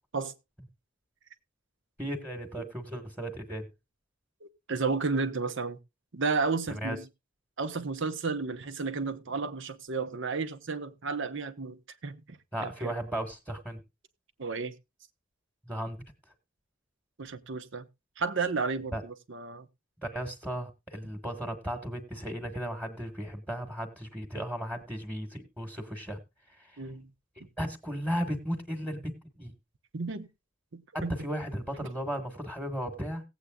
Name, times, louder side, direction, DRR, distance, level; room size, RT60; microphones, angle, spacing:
voice 1, 2.0-3.7 6.7-7.0 12.5-13.8 15.6-16.0 18.9-19.0 20.0-26.2 26.6-26.7 27.6-29.5 31.2-33.2, equal, 10° right, 1.4 m, -35 dB
voice 2, 4.4-5.8 6.1-7.1 7.6-12.9 14.4-14.7 17.2-17.9 18.2-19.7 26.8-27.1 29.9-30.3 30.7-31.2, right 4 dB, 70° right, 0.9 m, -32 dB
18.0 x 8.2 x 2.3 m
head